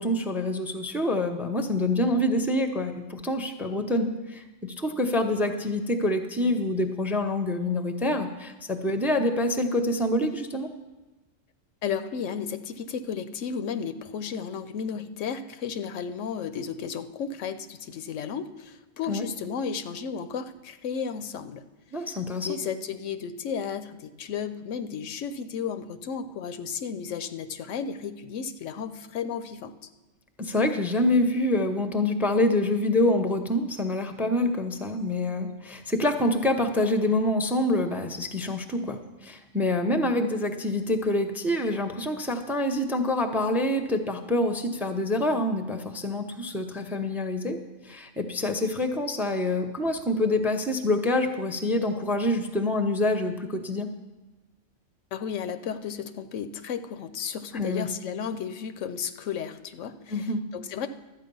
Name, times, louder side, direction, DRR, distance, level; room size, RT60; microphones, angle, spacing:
voice 1, 0.0-10.7 19.1-19.2 21.9-22.6 30.4-47.6 47.8-53.9 57.5-57.9 60.1-60.4, left 1 dB, ahead, 7 dB, 0.6 m, -26 dB
voice 2, 11.8-21.6 22.4-29.8 55.1-60.9, left 7 dB, 90° left, 11 dB, 1.0 m, -33 dB
12.5 x 8.7 x 5.4 m, 1.1 s
omnidirectional pair, 1.2 m